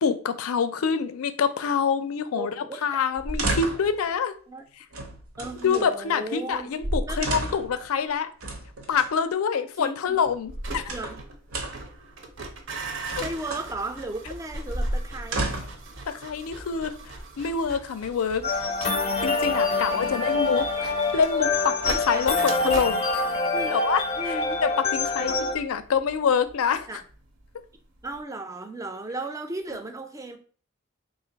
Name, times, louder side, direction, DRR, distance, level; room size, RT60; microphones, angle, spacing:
voice 1, 0.0-2.5 2.8-4.3 4.8-4.9 5.6-8.3 8.9-10.9 16.1-18.6 19.2-23.2 23.7-27.0, left 6 dB, 85° left, 11 dB, 0.4 m, -26 dB
voice 2, 2.3-2.8 4.5-4.6 5.4-6.7 7.0-7.3 9.8-10.2 10.9-11.2 13.2-15.5 19.5-20.4 22.1-22.3 23.5-23.8 24.2-24.6 25.2-25.4 26.9-27.0 28.0-30.4, right 2 dB, 15° right, 7 dB, 0.3 m, -36 dB
sound 1, 3.2-4.0 4.9-5.9 6.5-6.6 6.8-7.8 8.4-9.1 10.2-11.2 11.5-11.9 12.8-13.7 14.5-15.9 16.7-17.4, right 1 dB, 85° right, 0.8 m, -31 dB
sound 2, 10.5-27.5 27.8-28.2, right 3 dB, 60° right, 0.6 m, -41 dB
sound 3, 18.4-25.5, left 3 dB, 30° left, 0.6 m, -25 dB
3.2 x 2.4 x 3.9 m, 0.42 s
head